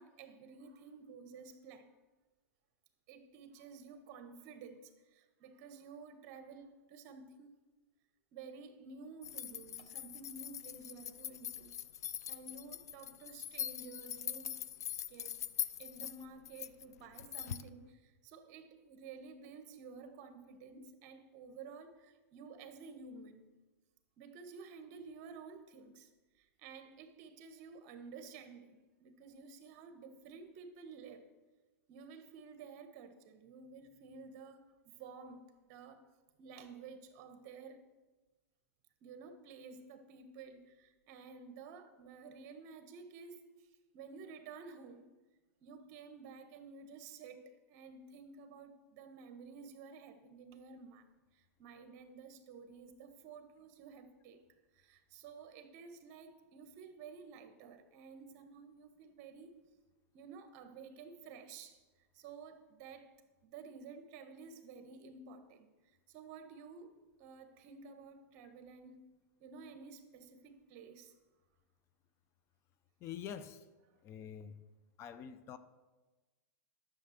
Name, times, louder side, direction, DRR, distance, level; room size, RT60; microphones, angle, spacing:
voice 1, 0.0-1.9 3.1-7.6 8.3-11.8 12.3-14.6 15.1-15.4 15.8-23.5 24.2-31.2 31.9-36.1 36.4-37.8 39.0-45.1 45.6-51.1 51.3-54.4 54.7-59.5 60.1-61.8 62.1-63.1 63.4-69.1 69.4-71.1, right 5 dB, 45° right, 1.4 m, -52 dB
sound 1, 9.2-17.7, left 10 dB, 85° left, 0.5 m, -42 dB
voice 2, 73.0-73.6 74.0-74.6 75.0-75.6, left 8 dB, 35° left, 0.7 m, -46 dB
11.5 x 7.1 x 6.6 m
hypercardioid pair, 130°, 8 cm